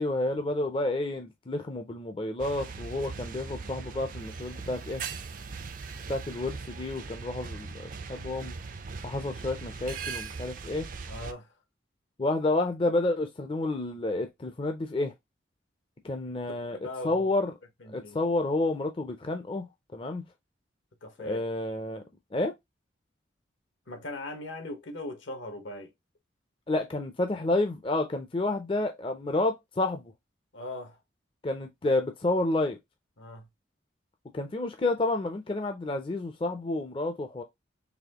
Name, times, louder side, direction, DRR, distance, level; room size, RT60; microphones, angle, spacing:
voice 1, 0.0-5.0 6.1-8.6 9.0-10.9 12.2-15.1 16.0-16.8 17.0-17.5 17.9-19.7 19.9-20.2 21.2-22.0 22.3-22.5 26.7-30.0 31.4-32.8 34.3-37.4, left 2 dB, 25° left, 0.4 m, -30 dB
sound 1, 2.4-11.3, right 4 dB, 45° right, 0.4 m, -40 dB
voice 2, 11.1-11.5 16.7-17.3 17.8-18.2 21.0-21.4 23.9-25.9 30.5-31.0 33.2-33.5, left 2 dB, 75° left, 1.2 m, -39 dB
4.1 x 3.0 x 2.8 m
head